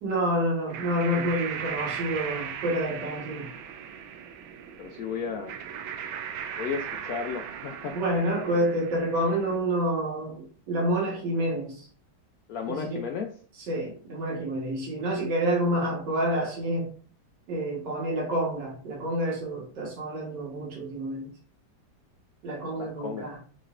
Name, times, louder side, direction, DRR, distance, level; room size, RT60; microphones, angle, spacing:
voice 1, 0.0-3.5 7.9-11.9 12.7-13.0 13.7-16.9 17.5-21.3 22.4-23.4, right 1 dB, 65° right, -2 dB, 2.1 m, -28 dB
sound 1, 0.7-9.6, right 8 dB, 90° right, 1.4 m, -38 dB
voice 2, 4.8-5.6 6.6-8.0 12.5-13.3 22.8-23.3, left 6 dB, 75° left, 4 dB, 0.8 m, -34 dB
6.0 x 3.2 x 2.5 m, 0.41 s
omnidirectional pair, 2.1 m